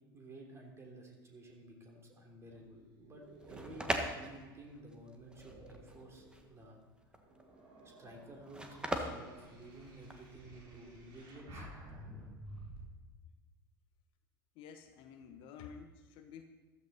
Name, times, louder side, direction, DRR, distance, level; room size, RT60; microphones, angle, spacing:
voice 1, 0.1-3.2 3.5-6.8 7.8-11.7, right 1 dB, 25° right, 1 dB, 3.2 m, -53 dB
sound 1, 2.4-6.6 7.1-12.8, right 1 dB, 45° right, 4.3 m, -53 dB
sound 2, 3.2-10.3, right 1 dB, 10° right, 1.6 m, -41 dB
voice 2, 14.6-16.4, left 7 dB, 50° left, 7 dB, 1.2 m, -51 dB
15.0 x 13.0 x 4.2 m, 1.3 s
figure-of-eight pair, 75°, 12 cm